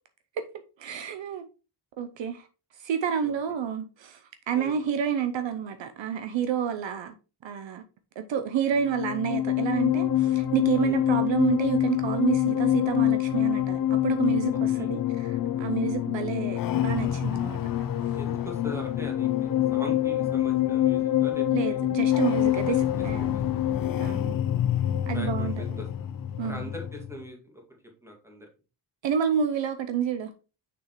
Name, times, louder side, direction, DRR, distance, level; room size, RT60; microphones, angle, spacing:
voice 1, 0.8-1.4 2.0-2.4 2.8-4.2 4.5-7.1 7.4-7.8 8.2-17.6 21.5-23.3 24.0-24.4 25.1-25.8 26.4-26.7 29.0-30.3, right 8 dB, 65° right, 0.7 m, -29 dB
sound 1, 8.7-27.2, left 12 dB, 45° left, 0.5 m, -26 dB
voice 2, 14.5-14.9 18.1-21.8 22.5-23.4 24.0-24.2 25.1-26.1 26.4-27.6 28.0-28.5, equal, 5° right, 1.9 m, -42 dB
6.4 x 6.1 x 3.0 m
wide cardioid pair, 150°, 48 cm